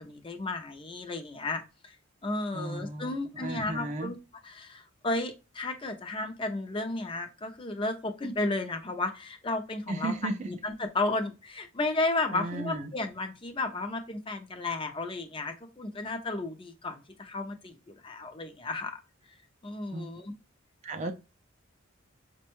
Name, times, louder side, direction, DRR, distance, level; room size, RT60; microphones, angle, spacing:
voice 1, 0.0-2.0 2.2-4.2 4.4-10.1 10.5-19.0 19.6-20.3 21.0-21.1, left 2 dB, 25° left, 0.5 m, -33 dB
voice 2, 2.5-4.1 9.9-10.5 12.3-12.9 19.9-20.1 20.8-21.1, right 2 dB, 35° right, 0.3 m, -35 dB
5.0 x 2.2 x 2.9 m
head